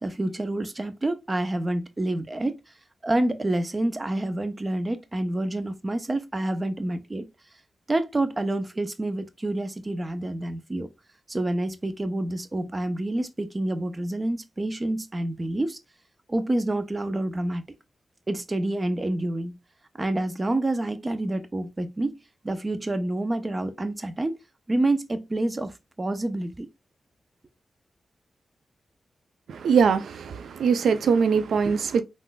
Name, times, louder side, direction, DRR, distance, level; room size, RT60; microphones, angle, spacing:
voice 1, 0.0-2.6 3.0-7.3 7.9-10.9 11.3-15.8 16.3-17.6 18.3-19.6 20.0-22.1 22.4-24.4 24.7-25.7 26.0-26.7, right 1 dB, 30° right, 0.6 m, -28 dB
voice 2, 29.5-32.0, right 6 dB, 85° right, 0.4 m, -22 dB
3.6 x 2.5 x 2.2 m
cardioid pair, 55°, 0 cm